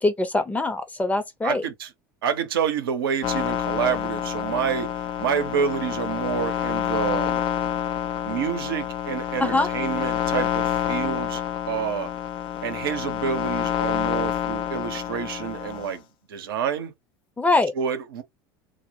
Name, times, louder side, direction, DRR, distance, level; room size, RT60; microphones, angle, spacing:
voice 1, 0.0-1.6 9.4-9.7 17.4-17.7, left 2 dB, 15° left, 0.7 m, -23 dB
voice 2, 1.4-1.9 2.2-7.4 8.2-12.1 12.6-16.0 16.3-16.9 17.7-18.2, right 8 dB, 80° right, 0.8 m, -28 dB
sound 1, 3.2-15.9, left 10 dB, 50° left, 0.5 m, -28 dB
2.2 x 2.1 x 2.9 m
hypercardioid pair, 85°, 12 cm